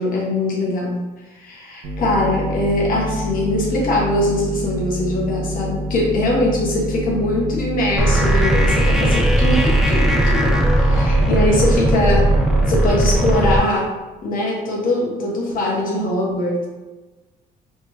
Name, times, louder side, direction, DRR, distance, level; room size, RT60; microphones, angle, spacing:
voice 1, 0.0-12.3 12.7-13.9 14.2-16.7, left 1 dB, 55° left, -3 dB, 1.2 m, -21 dB
sound 1, 1.8-12.8, left 1 dB, 75° right, 0.7 m, -27 dB
sound 2, 8.0-13.6, right 1 dB, 5° right, 0.6 m, -17 dB
3.4 x 3.1 x 3.0 m, 1.2 s
cardioid pair, 110°, 17 cm